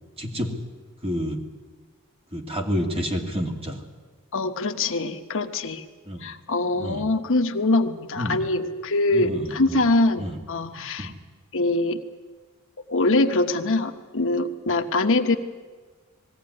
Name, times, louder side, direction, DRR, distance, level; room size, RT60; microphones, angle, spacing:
voice 1, 0.2-0.5 1.0-1.4 2.3-3.8 6.1-6.3 6.8-7.1 8.1-8.4 9.1-9.8 10.2-10.4 11.0-11.1, equal, 25° right, 2 dB, 2.4 m, -29 dB
voice 2, 4.3-5.8 6.2-11.1 11.5-12.0 12.9-15.4, left 2 dB, 65° left, 7 dB, 1.1 m, -23 dB
20.5 x 15.5 x 9.9 m, 1.4 s
head